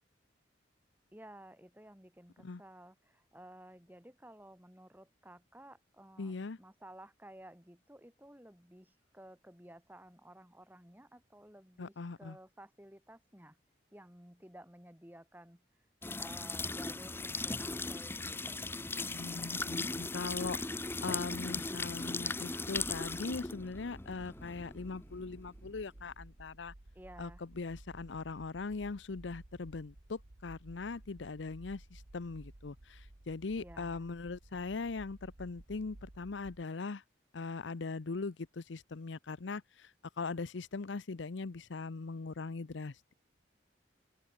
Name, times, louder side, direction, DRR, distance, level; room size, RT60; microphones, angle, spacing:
voice 1, 1.1-13.6 13.9-15.7 16.2-18.7 26.9-27.4 33.6-34.0, right 1 dB, 10° right, 6.5 m, -55 dB
voice 2, 6.2-6.6 11.8-12.4 19.1-20.6 21.0-26.7 27.2-37.0 37.3-43.1, left 4 dB, 80° left, 0.7 m, -40 dB
sound 1, 16.0-25.7, left 3 dB, 10° left, 0.7 m, -38 dB
sound 2, 22.7-36.6, right 1 dB, 75° right, 1.5 m, -55 dB
open air
head